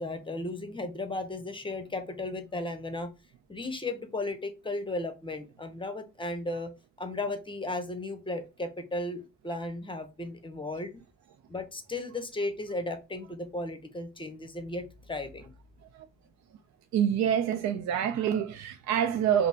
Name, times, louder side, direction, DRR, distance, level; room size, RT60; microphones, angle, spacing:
voice 1, 0.0-3.1 3.5-6.7 7.0-11.0 11.5-15.5, left 2 dB, 15° left, 0.7 m, -35 dB
voice 2, 16.9-19.5, right 9 dB, 65° right, 0.4 m, -26 dB
5.2 x 2.0 x 2.7 m
cardioid pair, 90°, 30 cm